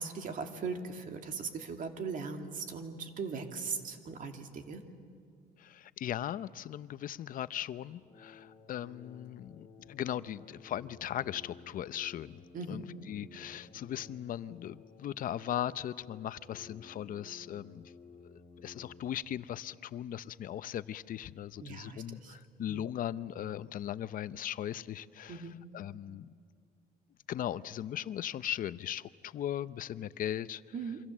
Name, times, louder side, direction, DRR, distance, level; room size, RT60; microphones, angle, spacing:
voice 1, 0.0-4.8 12.5-12.9 21.6-22.4 22.7-22.8 25.3-25.6 30.7-31.0, right 5 dB, 50° right, 5 dB, 2.5 m, -39 dB
voice 2, 5.6-12.4 12.7-17.9 18.3-26.3 27.3-30.6, left 11 dB, 55° left, 16 dB, 0.7 m, -38 dB
sound 1, 8.0-19.2, left 4 dB, 30° left, 3.1 m, -55 dB
27.5 x 25.0 x 7.4 m, 2.1 s
cardioid pair, 110°, 17 cm